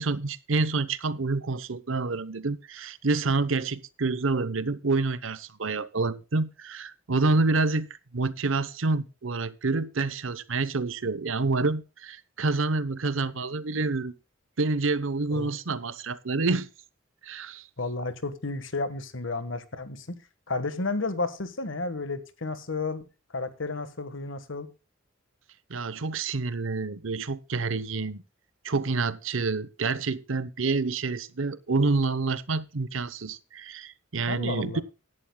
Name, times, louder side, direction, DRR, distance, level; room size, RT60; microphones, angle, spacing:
voice 1, 0.0-7.9 8.1-14.1 14.6-16.7 17.2-17.6 25.7-28.2 28.6-34.8, right 3 dB, 75° right, 0.9 m, -28 dB
voice 2, 17.8-20.2 20.5-23.1 23.3-24.7 34.3-34.8, left 3 dB, 70° left, 1.5 m, -32 dB
16.5 x 11.0 x 2.3 m
head